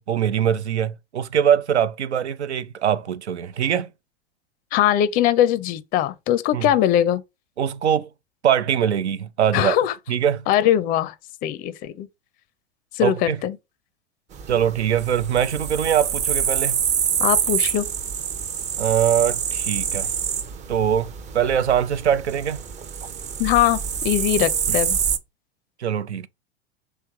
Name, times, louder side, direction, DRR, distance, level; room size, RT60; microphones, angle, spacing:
voice 1, 0.0-3.9 6.5-6.7 7.6-8.1 8.4-9.8 10.1-10.5 13.0-13.4 14.5-16.8 18.8-20.1 20.7-22.6 24.7-24.8 25.8-26.3, right 9 dB, 85° right, 0.5 m, -22 dB
voice 2, 4.7-7.2 9.5-9.9 10.5-11.1 11.4-12.1 12.9-13.6 17.2-17.9 23.4-25.0, left 11 dB, 25° left, 0.4 m, -21 dB
sound 1, 14.3-25.2, right 7 dB, 20° right, 0.5 m, -26 dB
3.2 x 3.1 x 4.7 m
hypercardioid pair, 95°, 33 cm